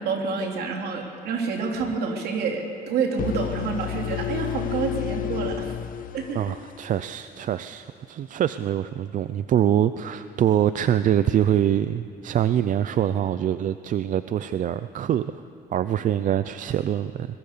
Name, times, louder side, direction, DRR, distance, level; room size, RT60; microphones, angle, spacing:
voice 1, 0.0-5.7 6.1-6.5, right 5 dB, 70° right, 2 dB, 3.3 m, -28 dB
sound 1, 3.2-7.1, left 11 dB, 55° left, 0.9 m, -31 dB
voice 2, 6.3-15.4 15.7-17.4, right 10 dB, 50° right, 13 dB, 0.6 m, -24 dB
22.5 x 21.5 x 6.8 m, 2.5 s
cardioid pair, 110°, 17 cm